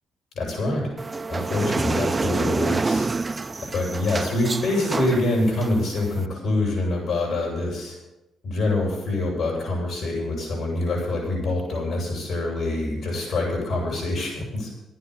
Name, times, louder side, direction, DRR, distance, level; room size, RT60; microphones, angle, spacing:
voice 1, 0.3-0.9 1.3-3.1 3.7-8.0 8.4-14.7, left 2 dB, 65° left, -2 dB, 6.5 m, -25 dB
sound 1, 1.0-6.2, right 3 dB, 25° right, 0.4 m, -27 dB
13.0 x 9.3 x 8.1 m, 0.93 s
cardioid pair, 90°, 0 cm